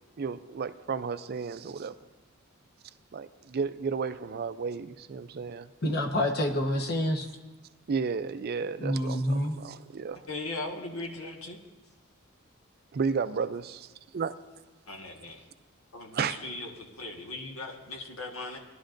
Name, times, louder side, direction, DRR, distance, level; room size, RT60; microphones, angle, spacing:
voice 1, 0.2-2.0 3.1-5.7 7.9-10.2 12.9-13.9 14.1-14.3 16.1-16.4, right 5 dB, 50° right, 11 dB, 0.4 m, -33 dB
voice 2, 5.8-7.2 8.8-9.5, left 1 dB, 50° left, 2 dB, 1.2 m, -27 dB
voice 3, 10.3-11.6 14.9-15.4 15.9-18.6, left 2 dB, 90° left, 2 dB, 1.5 m, -38 dB
19.5 x 11.5 x 2.6 m, 1.2 s
head